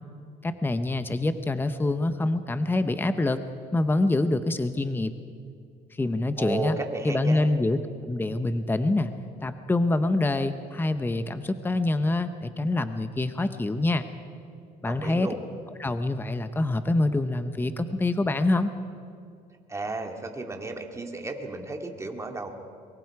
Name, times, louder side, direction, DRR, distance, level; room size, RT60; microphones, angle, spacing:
voice 1, 0.4-3.4 3.7-5.1 5.9-6.8 7.0-7.8 8.1-9.1 9.4-14.0 14.8-15.3 15.8-18.7, left 2 dB, 10° left, 10 dB, 0.9 m, -25 dB
voice 2, 6.4-7.5 14.9-15.4 19.7-22.5, right 2 dB, 15° right, 3 dB, 2.2 m, -33 dB
23.5 x 22.5 x 4.8 m, 2.3 s
cardioid pair, 110°, 17 cm